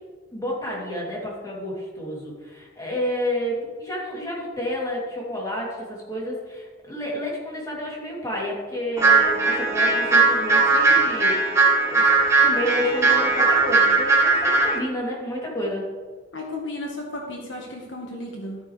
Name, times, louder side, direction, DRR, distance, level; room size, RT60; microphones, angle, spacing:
voice 1, 0.3-11.4 11.8-12.1 12.4-15.9, equal, 20° left, -4 dB, 2.9 m, -30 dB
sound 1, 9.0-14.8, right 3 dB, 15° right, 1.6 m, -19 dB
voice 2, 16.3-18.6, left 1 dB, 65° left, 0 dB, 1.5 m, -34 dB
13.0 x 8.2 x 3.3 m, 1.5 s
head